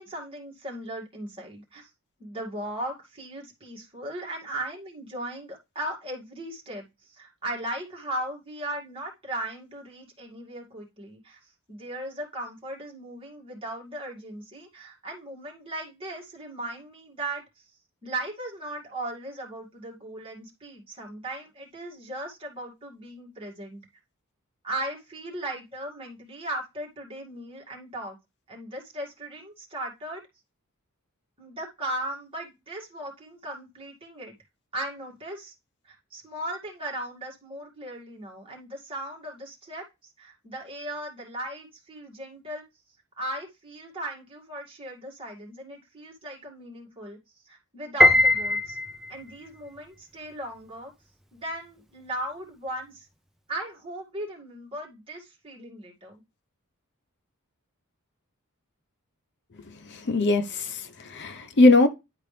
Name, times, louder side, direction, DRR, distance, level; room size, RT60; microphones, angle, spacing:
voice 1, 0.0-1.9 2.2-6.8 7.1-11.4 11.7-17.4 18.0-23.8 24.6-28.2 28.5-30.2 31.4-34.3 34.7-35.5 35.8-39.8 40.2-42.6 43.2-47.2 47.5-48.8 49.1-50.9 51.3-53.1 53.5-56.2, right 1 dB, 25° right, 2.2 m, -37 dB
Piano, 48.0-49.3, left 2 dB, ahead, 0.5 m, -20 dB
voice 2, 59.9-61.9, left 2 dB, 50° left, 0.8 m, -20 dB
10.5 x 4.0 x 3.3 m
head